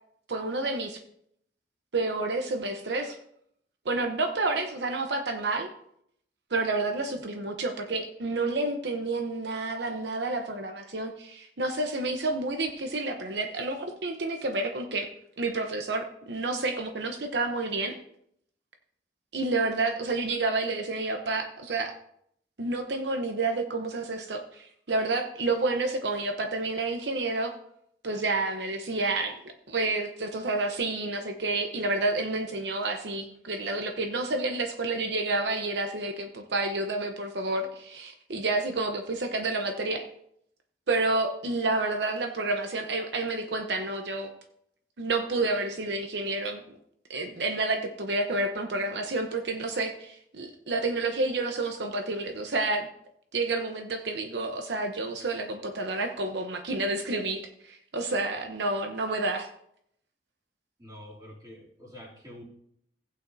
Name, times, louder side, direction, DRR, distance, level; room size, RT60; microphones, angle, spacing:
voice 1, 0.3-1.0 1.9-3.2 3.8-5.7 6.5-15.1 15.4-18.0 19.3-21.9 22.6-27.5 28.0-29.4 29.7-40.0 40.9-44.3 45.0-46.6 47.1-52.9 53.3-59.5, right 2 dB, 75° right, 5 dB, 0.8 m, -29 dB
voice 2, 60.8-62.4, left 1 dB, 20° right, -5 dB, 2.8 m, -46 dB
16.0 x 8.6 x 2.7 m, 0.72 s
head